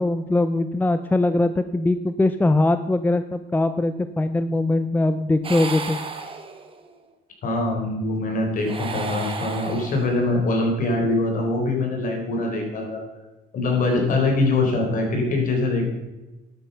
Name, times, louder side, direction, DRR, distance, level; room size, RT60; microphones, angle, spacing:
voice 1, 0.0-6.0, left 2 dB, 10° left, 11 dB, 0.5 m, -21 dB
sound 1, 5.4-6.9 8.5-10.4, right 4 dB, 30° right, 1.5 m, -33 dB
voice 2, 7.4-13.0 13.5-15.9, left 2 dB, 55° left, 1 dB, 4.5 m, -23 dB
11.5 x 9.3 x 5.8 m, 1.1 s
cardioid pair, 110°, 17 cm